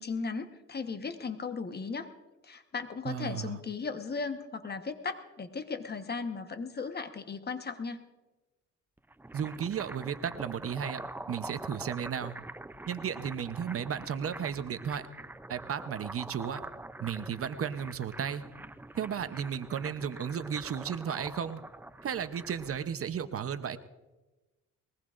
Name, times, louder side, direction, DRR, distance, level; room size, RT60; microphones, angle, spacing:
voice 1, 0.0-2.1 2.4-8.0, left 4 dB, 35° left, 7 dB, 1.2 m, -36 dB
voice 2, 3.0-3.6 9.3-11.0 11.3-12.4 12.9-15.1 15.5-16.6 17.0-18.5 18.9-21.6 22.0-23.8, right 8 dB, 50° right, 11 dB, 0.8 m, -34 dB
sound 1, 9.0-22.9, right 2 dB, 5° right, 0.4 m, -45 dB
21.5 x 19.0 x 2.5 m, 1.1 s
cardioid pair, 90°, 30 cm